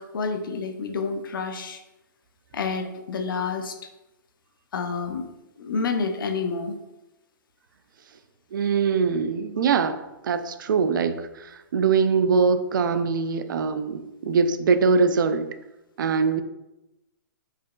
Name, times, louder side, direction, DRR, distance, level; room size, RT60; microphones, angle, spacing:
voice 1, 0.0-1.8 2.5-3.8 4.7-5.3 5.6-6.8, left 4 dB, 80° left, 6 dB, 0.6 m, -29 dB
voice 2, 8.5-15.5 16.0-16.4, right 5 dB, 70° right, 10 dB, 0.4 m, -23 dB
4.8 x 2.8 x 2.4 m, 0.97 s
hypercardioid pair, 170°, 11 cm